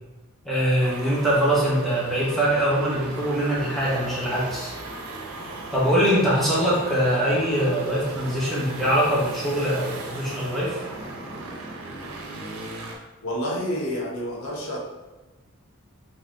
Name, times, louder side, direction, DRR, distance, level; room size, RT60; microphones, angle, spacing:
voice 1, 0.4-4.7 5.7-10.7, equal, ahead, -8 dB, 1.2 m, -23 dB
sound 1, 0.8-13.0, right 2 dB, 75° right, 0.7 m, -37 dB
voice 2, 13.2-14.8, equal, 85° left, -3 dB, 1.0 m, -29 dB
5.4 x 2.9 x 2.6 m, 1.2 s
head